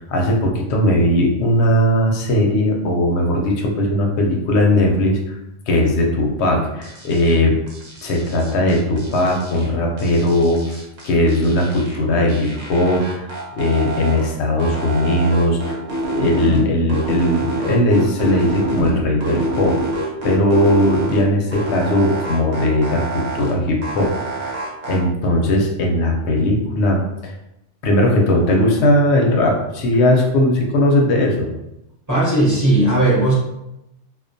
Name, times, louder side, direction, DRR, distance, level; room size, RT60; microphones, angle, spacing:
voice 1, 0.0-5.4 5.7-7.6 8.0-15.8 16.1-19.8 20.2-24.5 24.9-27.3 27.8-31.5, left 1 dB, 70° left, 1 dB, 0.8 m, -18 dB
sound 1, 6.8-7.3 7.7-9.7 10.0-12.0 12.3-14.3 14.6-16.6 16.9-18.9 19.2-21.2 21.5-23.5 23.8-25.0, right 2 dB, 85° right, 1.1 m, -27 dB
voice 2, 32.1-33.3, right 1 dB, 20° right, -9 dB, 0.7 m, -16 dB
2.2 x 2.2 x 2.5 m, 0.88 s
omnidirectional pair, 1.3 m